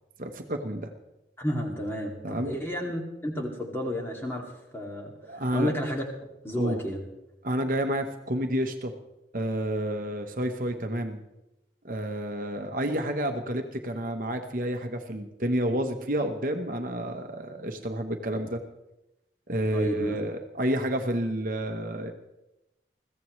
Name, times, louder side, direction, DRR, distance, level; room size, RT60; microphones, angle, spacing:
voice 1, 0.2-0.9 2.2-2.5 5.3-5.7 6.6-6.8 7.4-8.9 9.3-11.2 11.8-18.6 19.5-22.1, right 1 dB, 50° right, 5 dB, 1.1 m, -30 dB
voice 2, 1.4-4.4 4.7-6.0 6.4-7.0 19.7-20.2, equal, 15° left, 0 dB, 2.3 m, -31 dB
21.5 x 15.5 x 3.2 m, 0.94 s
head